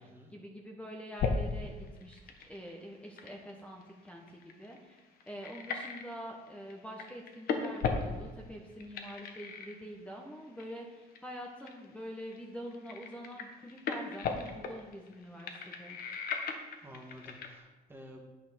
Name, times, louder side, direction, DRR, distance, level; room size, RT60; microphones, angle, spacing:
voice 1, 0.0-16.0, equal, 5° left, 0 dB, 1.1 m, -46 dB
sound 1, 1.2-1.5 1.9-6.1 6.5-6.7 7.0-8.4 8.8-10.2 10.6-10.8 11.1-11.8 12.2-12.4 12.7-17.6, left 5 dB, 60° left, 1.2 m, -36 dB
voice 2, 16.8-18.2, equal, 15° right, 0 dB, 1.9 m, -51 dB
9.1 x 5.8 x 5.8 m, 1.2 s
cardioid pair, 110°, 17 cm